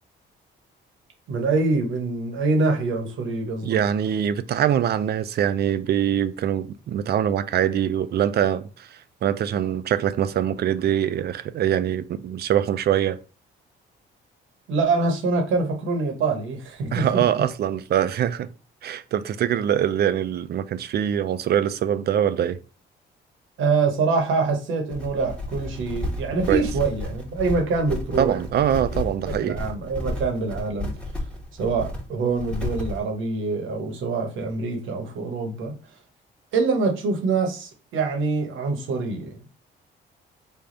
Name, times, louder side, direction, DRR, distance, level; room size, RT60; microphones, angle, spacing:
voice 1, 1.3-3.8 14.7-17.2 23.6-28.4 29.4-30.9 31.6-35.7 36.5-39.4, right 3 dB, 80° right, 1.1 m, -25 dB
voice 2, 3.6-13.2 16.9-18.5 18.8-22.6 26.5-26.6 28.2-29.6, right 10 dB, 55° right, 0.4 m, -23 dB
sound 1, 24.9-33.0, left 1 dB, 5° left, 0.9 m, -32 dB
3.4 x 2.3 x 3.8 m
cardioid pair, 90°, 20 cm